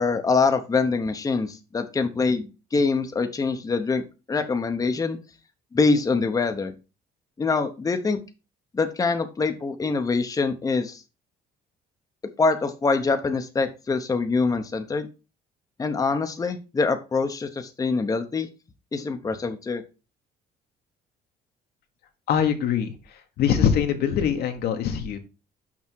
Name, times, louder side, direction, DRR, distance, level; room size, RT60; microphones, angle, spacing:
voice 1, 0.0-4.0 4.3-5.2 5.7-6.7 7.4-8.2 8.7-11.0 12.4-15.1 15.8-18.5 18.9-19.8, left 4 dB, 20° left, 6 dB, 0.9 m, -24 dB
voice 2, 22.3-22.9 23.4-25.2, left 8 dB, 70° left, 6 dB, 1.4 m, -23 dB
6.0 x 5.5 x 4.6 m, 0.30 s
cardioid pair, 110°, 17 cm